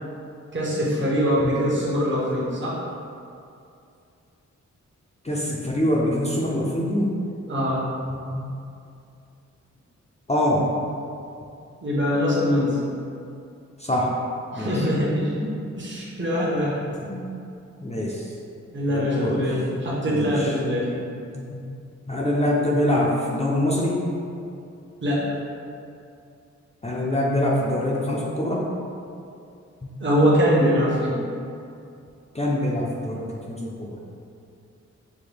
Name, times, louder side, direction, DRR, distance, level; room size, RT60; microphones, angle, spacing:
voice 1, 0.5-2.8 7.5-7.8 11.8-12.8 14.5-15.4 15.8-16.8 18.7-20.9 25.0-25.4 30.0-31.2, equal, 40° right, -6 dB, 1.0 m, -23 dB
voice 2, 5.2-7.1 8.3-8.4 10.3-10.7 13.8-14.1 14.5-14.8 15.4-15.5 17.0-17.3 17.8-18.2 18.9-19.4 20.1-20.5 21.3-21.6 22.1-24.0 26.8-28.6 29.8-29.9 32.3-34.0, left 1 dB, 20° left, -4 dB, 0.5 m, -24 dB
5.8 x 2.2 x 3.4 m, 2.5 s
wide cardioid pair, 95°, 29 cm